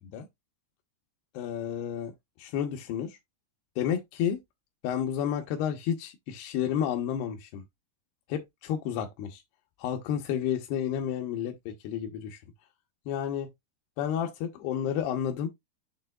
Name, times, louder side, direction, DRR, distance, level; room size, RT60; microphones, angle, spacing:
voice 1, 1.3-2.1 2.4-3.2 3.8-4.4 4.8-7.6 8.3-9.4 9.8-12.4 13.1-13.5 14.0-15.5, left 9 dB, 75° left, 2.5 m, -31 dB
7.3 x 6.6 x 2.3 m
omnidirectional pair, 5.7 m